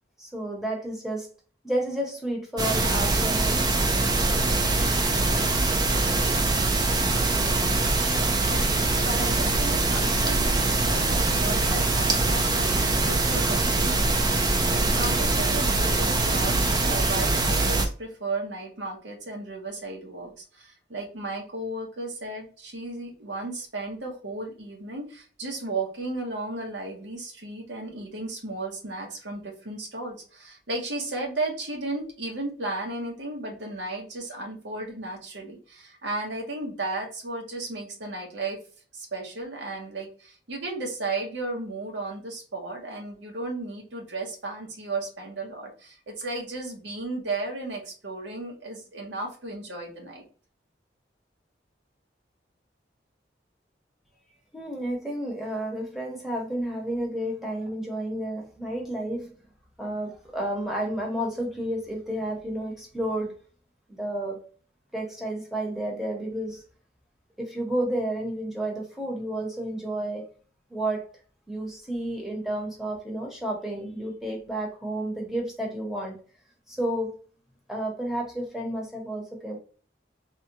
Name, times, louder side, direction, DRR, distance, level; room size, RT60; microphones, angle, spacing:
voice 1, 0.2-1.3 1.6-3.7 54.5-59.3 59.8-63.3 63.9-64.4 64.9-66.6 67.4-70.2 70.7-71.0 71.5-76.2 76.7-77.2 77.7-79.6, right 1 dB, ahead, -1 dB, 0.8 m, -31 dB
sound 1, 2.6-17.9, right 3 dB, 20° right, 0.4 m, -23 dB
voice 2, 8.5-38.6 38.9-50.3, right 2 dB, 85° right, 1 dB, 1.1 m, -34 dB
3.5 x 2.2 x 2.8 m, 0.40 s
head